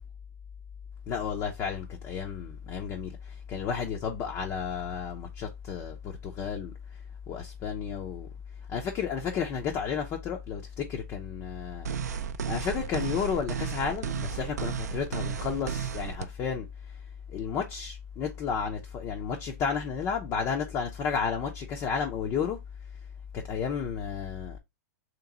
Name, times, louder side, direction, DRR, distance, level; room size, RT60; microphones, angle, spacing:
voice 1, 1.1-6.7 7.3-8.3 8.7-11.9 12.5-16.7 17.3-22.6 23.3-24.6, left 6 dB, 35° left, 0.6 m, -32 dB
sound 1, 11.9-16.3, right 8 dB, 85° right, 0.4 m, -33 dB
3.2 x 3.0 x 3.8 m
hypercardioid pair, 130°, 9 cm